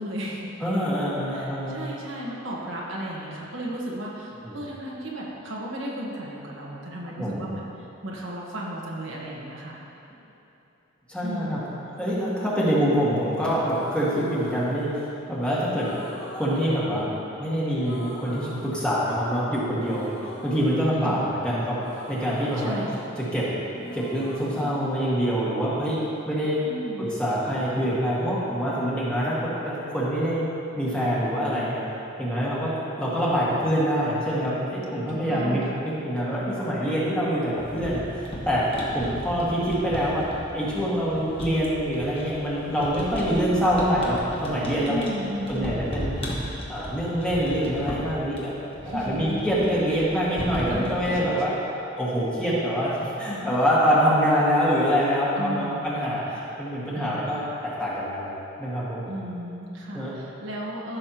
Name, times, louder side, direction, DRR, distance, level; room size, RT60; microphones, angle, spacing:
voice 1, 0.0-0.5 1.3-9.8 11.2-11.6 20.9-21.2 22.6-23.0 26.6-27.2 35.1-35.9 44.9-45.9 48.8-49.4 49.9-50.1 50.7-51.4 55.4-56.1 56.9-57.3 59.0-61.0, equal, 70° right, -4 dB, 1.4 m, -34 dB
voice 2, 0.6-1.8 4.4-4.6 7.2-7.4 11.1-11.6 12.0-15.0 15.3-15.9 16.3-17.1 17.4-20.1 20.4-21.8 22.1-22.8 23.2-23.5 23.9-26.0 26.2-26.6 27.0-30.4 30.8-31.8 32.2-40.3 40.5-45.1 45.5-46.1 46.7-51.5 52.0-59.0 59.9-60.1, equal, 5° left, -8 dB, 1.8 m, -25 dB
sound 1, 13.6-15.3 15.8-17.5 17.8-19.4 19.8-23.5 23.7-25.8, left 1 dB, 65° left, 2.1 m, -42 dB
sound 2, 37.6-51.1, equal, 30° left, 1.3 m, -36 dB
14.5 x 6.4 x 3.0 m, 3.0 s
head